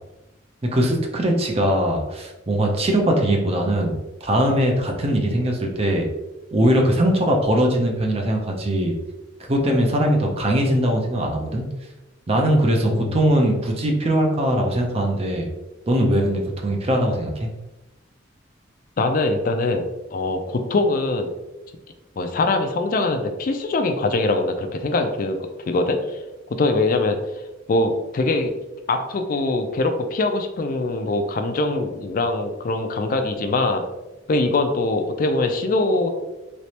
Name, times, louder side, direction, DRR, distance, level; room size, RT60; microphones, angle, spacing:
voice 1, 0.7-6.1 6.5-8.9 9.5-11.7 12.3-15.5 15.9-17.5, right 1 dB, 30° right, 1 dB, 0.6 m, -21 dB
voice 2, 19.0-21.3 22.2-25.4 25.7-26.2 26.5-27.2 27.7-28.5 28.9-33.8 34.3-36.1, left 2 dB, 45° left, 6 dB, 0.4 m, -22 dB
3.3 x 3.0 x 2.8 m, 1.0 s
head